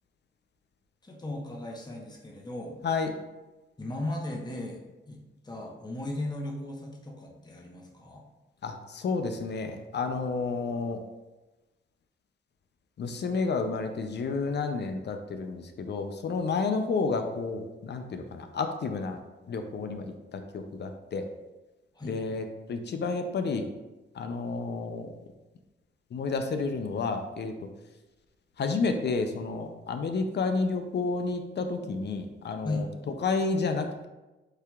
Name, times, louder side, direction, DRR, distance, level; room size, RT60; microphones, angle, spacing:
voice 1, 1.0-2.8 3.8-4.8 5.1-8.2 21.9-22.2 32.6-32.9, left 1 dB, 20° left, -1 dB, 1.0 m, -36 dB
voice 2, 8.6-11.0 13.0-19.2 19.5-21.3 22.0-23.7 24.1-25.1 26.1-27.5 28.6-32.9 33.2-34.1, left 4 dB, 55° left, 6 dB, 0.5 m, -30 dB
7.9 x 2.8 x 2.4 m, 1.1 s
cardioid pair, 65°, 21 cm